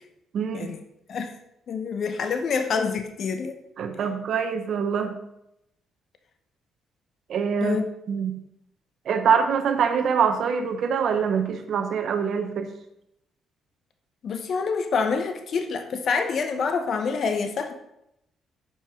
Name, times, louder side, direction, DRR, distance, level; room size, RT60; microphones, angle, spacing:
voice 1, 0.3-0.7 3.8-5.2 7.3-7.8 8.1-8.4 9.1-12.7, right 6 dB, 65° right, 7 dB, 0.9 m, -24 dB
voice 2, 1.7-3.6 7.6-7.9 14.2-17.7, left 5 dB, 60° left, 7 dB, 0.9 m, -27 dB
7.3 x 5.4 x 5.0 m, 0.82 s
cardioid pair, 90°, 0 cm